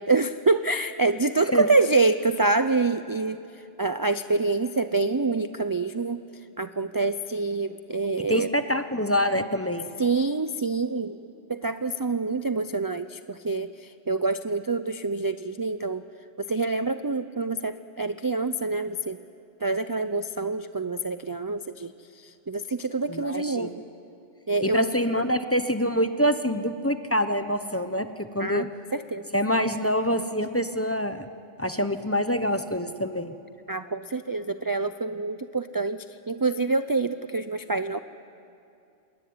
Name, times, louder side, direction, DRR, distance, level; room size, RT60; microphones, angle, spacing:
voice 1, 0.0-6.2 6.6-8.5 10.0-11.2 11.5-16.0 16.4-19.2 19.6-23.8 24.5-24.9 28.4-29.3 33.7-36.0 36.3-38.0, right 3 dB, 30° right, 10 dB, 0.4 m, -26 dB
voice 2, 8.3-9.8 23.1-23.7 24.6-28.7 29.3-31.3 31.6-33.3, equal, 15° left, 9 dB, 0.8 m, -26 dB
26.0 x 21.5 x 9.5 m, 2.5 s
omnidirectional pair, 1.2 m